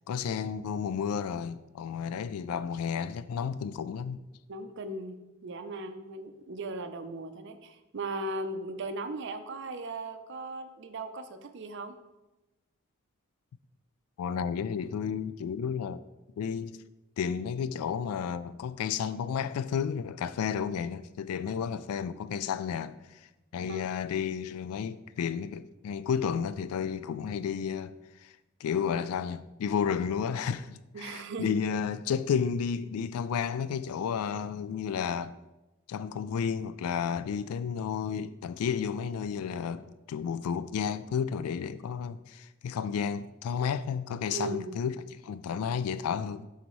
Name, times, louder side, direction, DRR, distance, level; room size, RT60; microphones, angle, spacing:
voice 1, 0.1-4.2 14.2-16.0 16.4-16.8 17.2-23.3 23.5-28.3 28.6-35.4 35.9-46.5, left 7 dB, 90° left, 0.3 m, -32 dB
voice 2, 4.5-12.0 23.7-24.2 30.9-31.5 44.3-44.8, right 2 dB, 55° right, 0.6 m, -38 dB
11.5 x 4.0 x 3.1 m
head